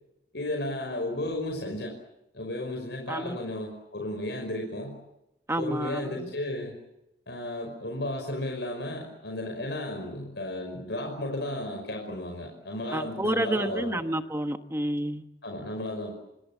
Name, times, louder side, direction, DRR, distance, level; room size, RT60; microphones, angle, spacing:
voice 1, 0.3-2.0 2.3-5.0 5.6-6.7 7.3-14.0 15.4-16.1, left 1 dB, 70° left, 2 dB, 5.5 m, -34 dB
voice 2, 5.5-6.3 12.9-15.2, right 1 dB, 15° right, 7 dB, 1.2 m, -29 dB
27.0 x 26.0 x 7.3 m, 0.89 s
head